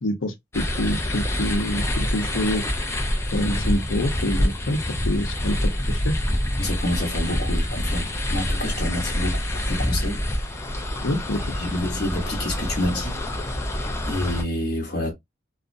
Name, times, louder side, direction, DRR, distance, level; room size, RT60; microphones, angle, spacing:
voice 1, 0.0-2.6 3.3-6.2 11.0-11.5, left 1 dB, 80° left, 0.7 m, -26 dB
sound 1, 0.5-14.4, left 1 dB, 15° left, 0.3 m, -26 dB
voice 2, 6.6-10.2 11.6-13.2 14.1-15.1, left 1 dB, 50° left, 0.8 m, -28 dB
2.4 x 2.1 x 2.5 m
head